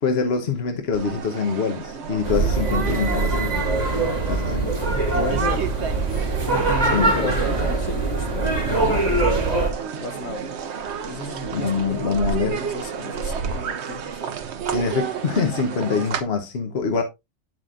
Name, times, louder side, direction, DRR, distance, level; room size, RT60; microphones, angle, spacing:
voice 1, 0.0-3.6 4.2-4.7 6.9-7.3 11.5-12.6 14.7-17.0, left 5 dB, 55° left, 1.2 m, -24 dB
sound 1, 0.9-16.2, right 6 dB, 60° right, 1.0 m, -31 dB
sound 2, 2.2-9.7, right 3 dB, 30° right, 2.4 m, -23 dB
voice 2, 5.1-5.7 6.4-10.6 11.1-14.2 15.9-16.1, left 2 dB, 80° left, 1.7 m, -33 dB
9.7 x 7.6 x 2.4 m
omnidirectional pair, 1.3 m